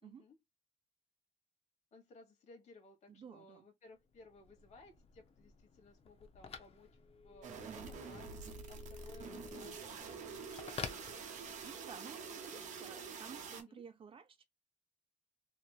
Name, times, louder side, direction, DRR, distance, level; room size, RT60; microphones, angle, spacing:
voice 1, 0.0-0.4 1.9-6.9 7.2-11.6 12.5-12.6 13.5-13.8, left 2 dB, 75° left, 1.3 m, -60 dB
voice 2, 3.1-3.7 7.6-8.0 11.4-14.4, right 6 dB, 50° right, 0.6 m, -53 dB
Telephone, 4.0-11.9, left 5 dB, 55° left, 0.6 m, -51 dB
sound 1, 7.4-13.6, right 5 dB, 85° right, 0.7 m, -47 dB
3.0 x 2.6 x 2.3 m
cardioid pair, 85°, 12 cm